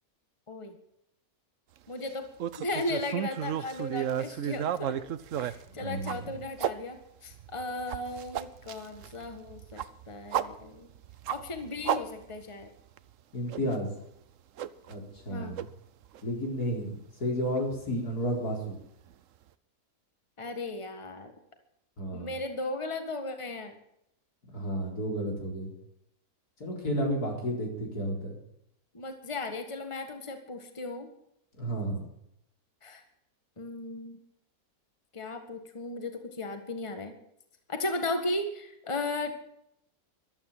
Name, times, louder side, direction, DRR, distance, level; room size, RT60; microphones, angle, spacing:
voice 1, 1.9-2.3 2.6-5.0 5.3-10.9 11.3-12.7 15.3-15.6 20.4-21.3 22.1-23.8 28.9-31.1 32.8-33.0 33.6-34.2 35.1-37.1 37.7-39.3, left 2 dB, 20° left, 6 dB, 1.7 m, -36 dB
sound 1, 2.4-6.7 7.3-12.6 13.0-13.1 13.5-13.8 14.6-15.3 15.6-15.7 16.1-16.2 17.5-17.6, right 10 dB, 65° right, 1.0 m, -33 dB
voice 2, 5.8-6.2 13.3-13.9 14.9-15.6 16.2-18.8 22.0-22.3 24.5-25.7 26.6-28.4 31.6-32.1, equal, 85° left, 0 dB, 4.9 m, -32 dB
14.5 x 12.0 x 7.5 m, 0.77 s
omnidirectional pair, 1.6 m